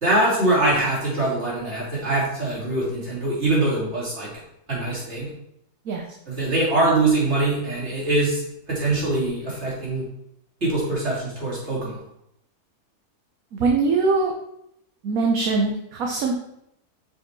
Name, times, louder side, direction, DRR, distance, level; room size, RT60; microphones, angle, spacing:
voice 1, 0.0-4.3 4.7-5.3 6.3-8.4 8.7-10.0 10.6-11.9, right 2 dB, 45° right, -6 dB, 3.1 m, -23 dB
voice 2, 13.5-14.3 15.0-16.3, right 4 dB, 65° right, 1 dB, 1.3 m, -22 dB
6.6 x 4.9 x 4.6 m, 0.79 s
omnidirectional pair, 1.6 m